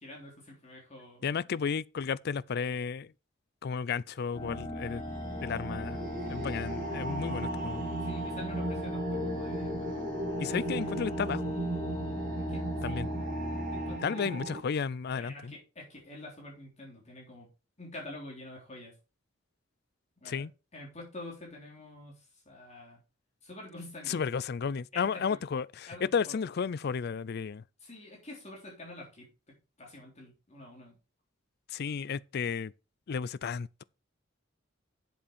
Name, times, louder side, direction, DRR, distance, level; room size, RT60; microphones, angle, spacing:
voice 1, 0.0-1.2 6.2-6.6 8.0-10.1 10.4-10.9 12.4-13.0 13.7-14.4 15.1-17.5 17.8-18.9 20.2-20.4 20.7-23.0 23.4-24.2 24.9-25.4 25.9-26.4 27.8-31.0, left 1 dB, 35° left, 3.7 m, -47 dB
voice 2, 1.2-3.1 3.6-5.0 5.4-6.0 6.3-7.9 10.4-11.4 12.8-13.1 14.0-15.5 20.3-20.5 24.1-27.6 31.7-32.7 33.1-33.8, left 6 dB, 55° left, 0.4 m, -33 dB
sound 1, 4.3-14.0, equal, 15° left, 2.4 m, -37 dB
sound 2, 4.4-14.6, right 1 dB, 45° right, 1.9 m, -37 dB
7.9 x 6.9 x 5.2 m
head